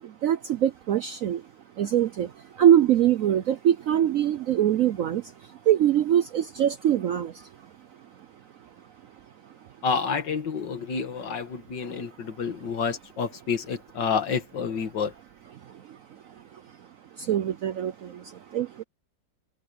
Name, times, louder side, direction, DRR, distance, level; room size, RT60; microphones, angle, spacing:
voice 1, 0.2-1.4 1.8-2.3 2.6-5.2 5.7-7.3 17.3-17.9 18.5-18.7, right 10 dB, 70° right, 0.8 m, -22 dB
voice 2, 9.8-15.1, left 6 dB, 75° left, 2.3 m, -29 dB
omnidirectional pair, 2.0 m